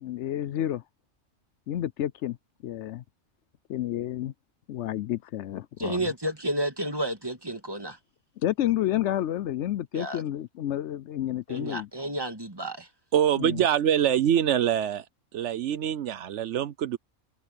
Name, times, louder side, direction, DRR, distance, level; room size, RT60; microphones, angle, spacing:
voice 1, 0.0-0.8 1.7-2.4 2.6-3.0 3.7-4.3 4.7-6.0 8.4-11.9 13.4-13.6, left 12 dB, 70° left, 0.9 m, -30 dB
voice 2, 5.8-8.0 9.9-10.2 11.5-12.9, right 1 dB, 20° right, 2.0 m, -31 dB
voice 3, 13.1-15.0 15.3-17.0, right 10 dB, 70° right, 1.0 m, -24 dB
omnidirectional pair, 1.3 m